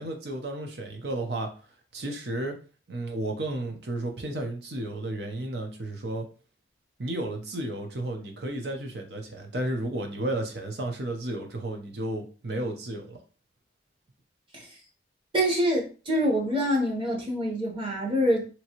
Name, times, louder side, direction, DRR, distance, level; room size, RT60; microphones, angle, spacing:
voice 1, 0.0-1.5 1.9-2.5 2.9-6.3 7.0-13.2, right 1 dB, 60° right, 4 dB, 0.7 m, -33 dB
voice 2, 15.3-18.5, equal, 30° right, 0 dB, 0.9 m, -25 dB
3.0 x 2.6 x 2.9 m, 0.36 s
head